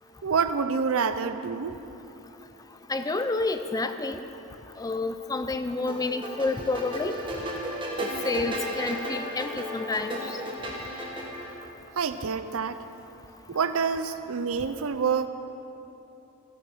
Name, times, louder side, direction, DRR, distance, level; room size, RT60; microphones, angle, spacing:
voice 1, 0.2-1.8 12.0-12.8 13.5-15.3, right 5 dB, 75° right, 11 dB, 0.6 m, -27 dB
voice 2, 2.9-4.2 4.8-7.2 8.0-10.4, left 3 dB, 15° left, 9 dB, 0.4 m, -29 dB
sound 1, 5.9-11.5, equal, 25° right, 1.6 m, -34 dB
16.0 x 7.4 x 5.5 m, 3.0 s
head